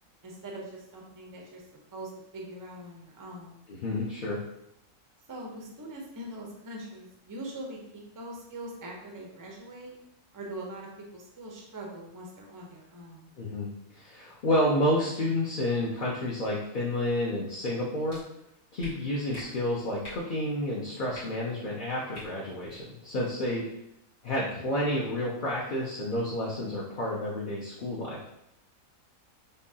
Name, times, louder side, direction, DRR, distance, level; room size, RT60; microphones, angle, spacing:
voice 1, 0.2-1.6 1.9-3.6 5.3-9.9 10.3-13.4, right 1 dB, 30° right, -1 dB, 0.3 m, -42 dB
voice 2, 3.8-4.4 13.4-18.2 18.7-23.6 24.2-28.2, left 1 dB, 50° left, -5 dB, 0.6 m, -30 dB
sound 1, 18.1-18.2 18.8-18.9 19.3-19.5 20.0-20.2 21.1-21.2 22.1-22.3 22.6-22.8, left 2 dB, 85° left, 1.8 m, -43 dB
5.2 x 2.3 x 2.7 m, 0.80 s
omnidirectional pair, 1.5 m